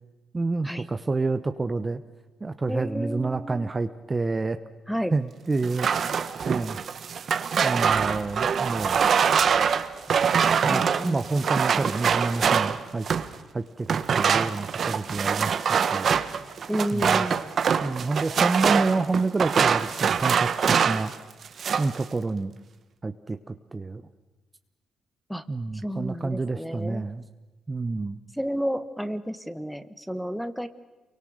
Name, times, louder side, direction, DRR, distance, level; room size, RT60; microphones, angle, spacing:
voice 1, 0.3-2.0 2.4-4.6 5.1-5.9 6.5-6.8 7.6-9.0 10.6-13.1 13.5-16.1 16.9-17.2 17.8-21.1 21.8-22.5 23.0-24.0 25.5-27.2 27.7-28.2, right 3 dB, 25° right, 10 dB, 1.0 m, -28 dB
voice 2, 2.7-3.7 4.9-5.1 10.7-11.4 16.7-17.5 25.3-25.4 25.7-27.1 28.4-30.7, equal, ahead, 12 dB, 1.4 m, -31 dB
sound 1, 5.6-13.3 13.9-21.1 21.4-22.0, right 7 dB, 55° right, 1.3 m, -24 dB
sound 2, 7.9-11.2 11.7-11.8, right 7 dB, 85° right, 4.9 m, -47 dB
28.0 x 24.0 x 6.6 m, 1.1 s
cardioid pair, 90°, 0 cm